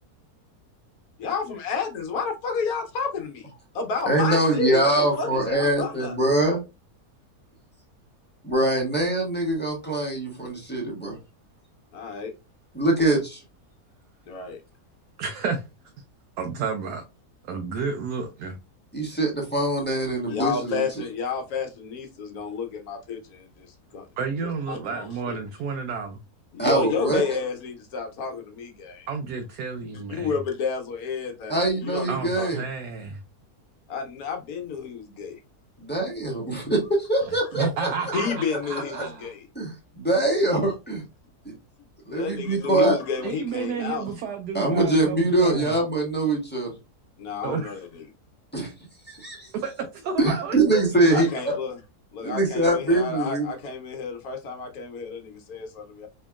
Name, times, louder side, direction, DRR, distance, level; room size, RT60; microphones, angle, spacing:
voice 1, 1.2-3.5 3.7-6.1 11.9-12.3 14.3-14.6 20.3-24.1 24.4-25.4 26.5-29.1 30.1-32.5 33.9-35.4 38.1-39.4 42.1-44.2 47.2-48.1 51.1-51.8 52.1-56.1, left 5 dB, 70° left, 1.2 m, -31 dB
voice 2, 4.1-6.6 8.4-11.2 12.7-13.4 18.9-20.8 26.6-27.4 31.5-32.6 35.8-37.9 39.0-39.1 39.5-41.0 41.4-41.5 42.1-43.0 44.5-46.8 48.5-48.7 49.1-49.5 50.2-51.5 52.2-53.5, right 2 dB, 5° left, 1.0 m, -23 dB
voice 3, 15.2-15.6 16.4-17.0 17.4-18.6 24.2-26.2 29.1-30.3 32.1-33.2 37.5-38.3 38.7-39.3 43.2-45.7 47.4-47.8 49.5-50.8 51.1-51.2, right 5 dB, 80° right, 1.1 m, -31 dB
4.3 x 2.8 x 2.3 m
omnidirectional pair, 1.7 m